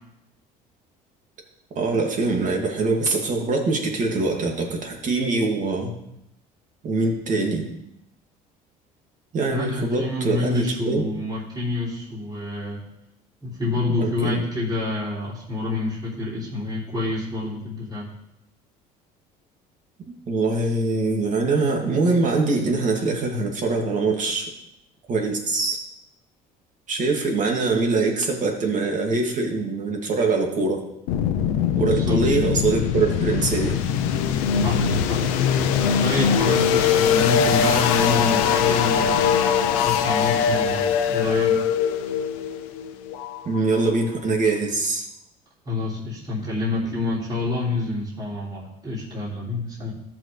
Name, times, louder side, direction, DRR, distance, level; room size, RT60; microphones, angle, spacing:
voice 1, 1.7-6.0 6.8-7.6 9.3-11.0 14.0-14.5 20.3-24.5 25.1-25.8 26.9-30.8 31.7-33.8 36.1-36.3 43.4-45.1, right 3 dB, 45° right, 1 dB, 2.5 m, -23 dB
voice 2, 9.5-12.8 13.4-18.1 31.8-32.2 34.6-35.3 36.0-39.4 39.8-41.7 45.7-49.9, left 3 dB, 25° right, -7 dB, 3.5 m, -27 dB
sound 1, 31.1-43.9, left 7 dB, 85° left, 0.8 m, -22 dB
13.5 x 6.0 x 3.4 m, 0.82 s
supercardioid pair, 80°, 17 cm